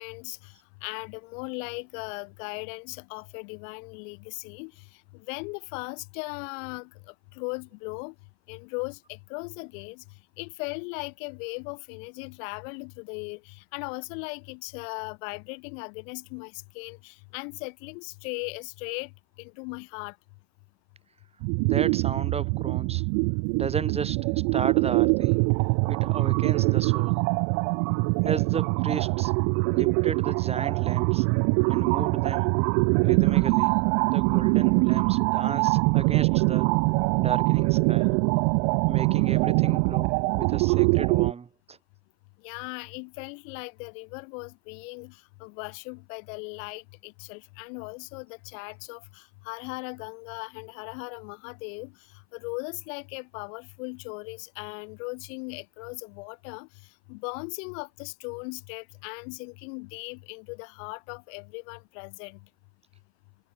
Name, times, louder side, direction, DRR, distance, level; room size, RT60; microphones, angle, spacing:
voice 1, 0.0-4.9 5.1-8.1 8.5-10.0 10.4-19.1 19.4-20.2 42.4-51.9 52.3-56.7 57.1-62.4, left 35 dB, 90° left, 8.0 m, -38 dB
sound 1, 21.4-41.3, right 40 dB or more, 75° right, 0.8 m, -23 dB
voice 2, 21.6-23.1 23.5-25.4 25.9-27.2 28.2-29.3 29.7-31.3 31.7-32.5 33.0-36.8 37.2-38.1 38.9-41.8, right 5 dB, 15° right, 7.0 m, -34 dB
cardioid pair, 175°, 37 cm